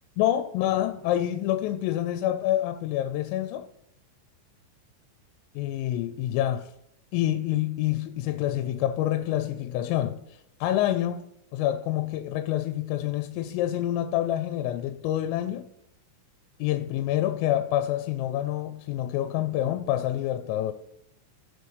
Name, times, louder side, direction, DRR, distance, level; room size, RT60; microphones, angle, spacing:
voice 1, 0.2-3.7 5.6-6.7 7.1-11.2 11.5-15.7 16.6-20.7, left 13 dB, 85° left, 3.1 m, -27 dB
16.0 x 7.0 x 3.1 m
omnidirectional pair, 5.9 m